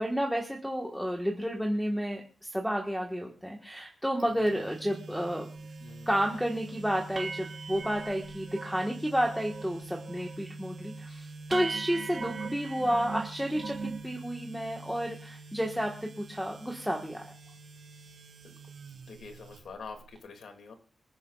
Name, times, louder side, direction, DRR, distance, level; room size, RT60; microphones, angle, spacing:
voice 1, 0.0-5.5 6.1-17.2, equal, ahead, 1 dB, 1.4 m, -31 dB
sound 1, 4.2-20.2, right 2 dB, 70° right, 3.4 m, -46 dB
sound 2, 5.6-5.7 6.1-6.4 6.7-6.8 7.1-9.0 9.2-9.7 10.0-10.4 10.8-10.9 11.5-14.1, right 4 dB, 40° right, 0.5 m, -39 dB
voice 2, 5.8-6.1 12.3-12.6 18.4-18.5 18.8-20.7, left 4 dB, 80° left, 5 dB, 2.4 m, -46 dB
26.5 x 10.5 x 2.4 m, 0.38 s
wide cardioid pair, 165°, 0 cm